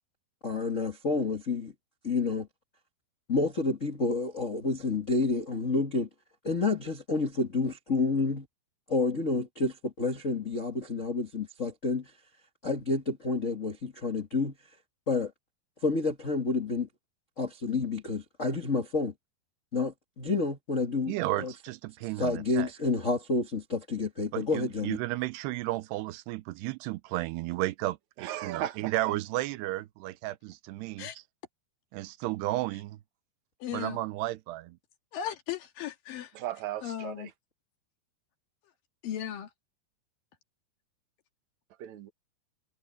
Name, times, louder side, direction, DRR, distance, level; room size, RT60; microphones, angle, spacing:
voice 1, 0.4-1.7 2.0-2.5 3.3-6.1 6.4-8.5 8.9-12.1 12.6-14.5 15.1-15.3 15.8-16.9 17.4-19.1 19.7-21.5 22.2-25.0, left 3 dB, 85° left, 0.6 m, -29 dB
voice 2, 21.1-22.7 24.3-31.1 31.9-33.0 33.7-34.8, right 17 dB, 80° right, 2.8 m, -33 dB
voice 3, 28.2-29.1 36.3-37.3 41.8-42.1, right 13 dB, 55° right, 2.4 m, -37 dB
voice 4, 33.6-34.0 35.1-36.3 36.8-37.3 39.0-39.5, left 10 dB, 60° left, 3.4 m, -36 dB
omnidirectional pair, 4.8 m